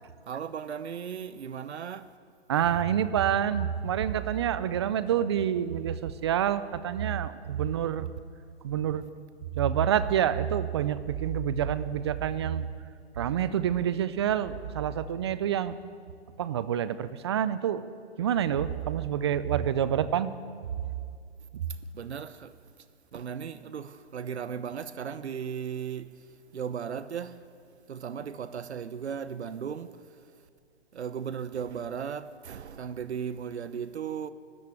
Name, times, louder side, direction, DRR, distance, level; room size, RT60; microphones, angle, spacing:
voice 1, 0.3-2.1 21.7-22.6 23.1-30.2 30.9-34.3, right 7 dB, 75° right, 1.0 m, -36 dB
voice 2, 2.5-8.1 8.6-9.1 9.6-12.7 13.2-15.7 16.4-17.9 18.2-20.3, right 9 dB, 25° right, 0.4 m, -27 dB
13.0 x 11.5 x 8.5 m
hypercardioid pair, 145°, 33 cm